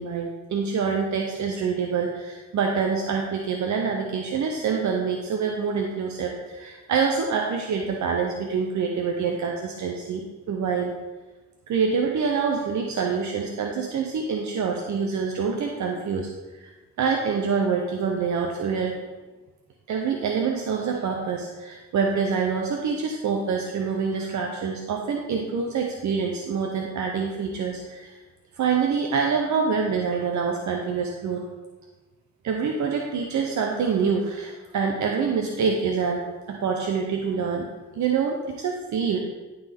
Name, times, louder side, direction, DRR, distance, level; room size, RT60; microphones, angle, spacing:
voice 1, 0.0-10.2 10.5-10.9 11.7-16.3 16.6-16.7 17.0-18.9 19.9-28.1 28.6-31.4 32.4-36.2 36.5-37.7 37.9-39.2, right 5 dB, 75° right, 1 dB, 0.8 m, -26 dB
11.5 x 4.0 x 3.5 m, 1.2 s
cardioid pair, 60°, 29 cm